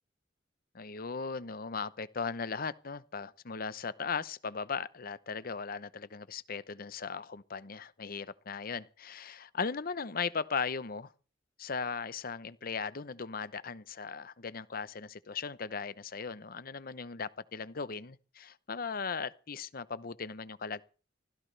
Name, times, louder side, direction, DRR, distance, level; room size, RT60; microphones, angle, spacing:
voice 1, 0.7-11.1 11.6-20.8, left 5 dB, 55° left, 0.8 m, -38 dB
24.5 x 16.5 x 3.4 m
head